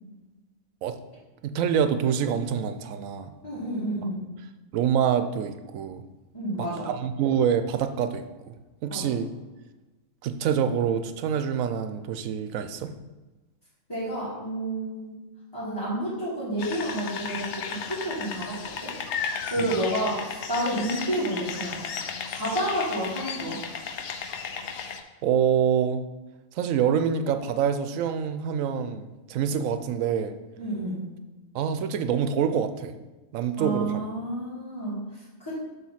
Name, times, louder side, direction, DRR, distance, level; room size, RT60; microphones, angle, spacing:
voice 1, 1.4-3.3 4.7-6.0 6.6-8.5 8.8-9.3 10.2-12.9 19.6-19.7 25.2-26.0 26.5-30.4 31.5-33.0 33.3-34.1, right 8 dB, 80° right, 10 dB, 1.0 m, -26 dB
voice 2, 3.4-4.2 6.3-6.9 8.9-9.1 13.9-15.2 15.5-18.9 19.5-21.8 22.3-23.6 30.6-31.0 33.6-35.6, right 1 dB, 15° left, -11 dB, 2.2 m, -30 dB
sound 1, 16.6-25.0, left 6 dB, 65° left, 0.9 m, -34 dB
7.4 x 3.3 x 5.7 m, 1.1 s
omnidirectional pair, 1.4 m